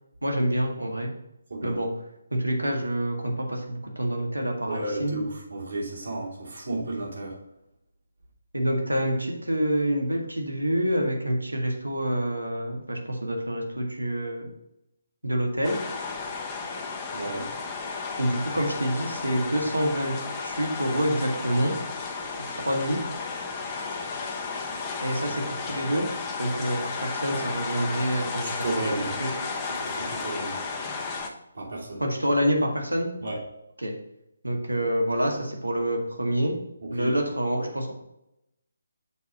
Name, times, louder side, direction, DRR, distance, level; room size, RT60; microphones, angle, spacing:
voice 1, 0.2-1.1 1.6-1.9 2.3-5.2 8.5-14.5 15.2-15.8 18.2-20.1 20.4-21.7 22.4-23.0 25.0-26.1 26.4-28.5 29.0-29.3 32.0-33.1 33.8-33.9 34.4-36.6 36.9-37.9, equal, 80° right, 1 dB, 1.9 m, -27 dB
voice 2, 1.5-1.8 4.7-7.4 17.1-17.5 28.4-29.1 29.8-30.9 31.5-32.0 33.2-33.4 36.8-37.1, right 2 dB, 60° right, -3 dB, 2.9 m, -33 dB
sound 1, 15.6-31.3, left 4 dB, 20° left, 0.9 m, -33 dB
6.7 x 4.8 x 5.3 m, 0.84 s
figure-of-eight pair, 145°, 0 cm